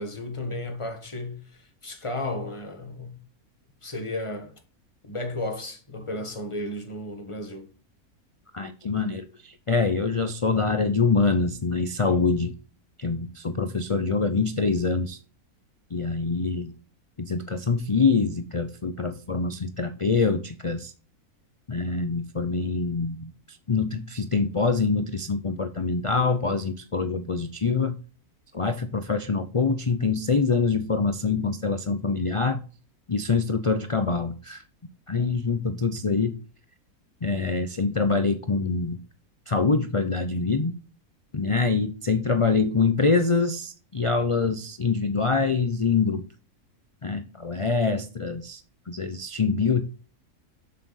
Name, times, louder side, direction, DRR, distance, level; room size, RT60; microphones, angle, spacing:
voice 1, 0.0-3.2 3.8-4.5 5.0-7.7, left 1 dB, 20° left, 1.5 m, -34 dB
voice 2, 8.5-12.5 13.0-15.2 15.9-16.7 17.2-20.9 21.7-28.0 28.5-32.6 33.1-34.6 35.1-36.3 37.2-39.0 39.5-40.7 41.3-46.3 47.0-49.8, left 4 dB, 50° left, 0.3 m, -25 dB
7.6 x 7.3 x 4.1 m
omnidirectional pair, 1.6 m